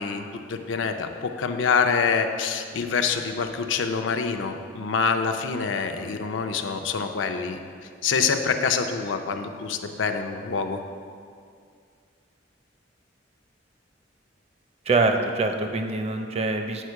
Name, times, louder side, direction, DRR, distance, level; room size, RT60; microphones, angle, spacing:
voice 1, 0.0-7.6 8.0-10.8, left 5 dB, 80° left, 6 dB, 0.5 m, -26 dB
voice 2, 14.9-16.8, right 3 dB, 35° right, 5 dB, 0.5 m, -24 dB
8.2 x 4.4 x 4.6 m, 2.2 s
head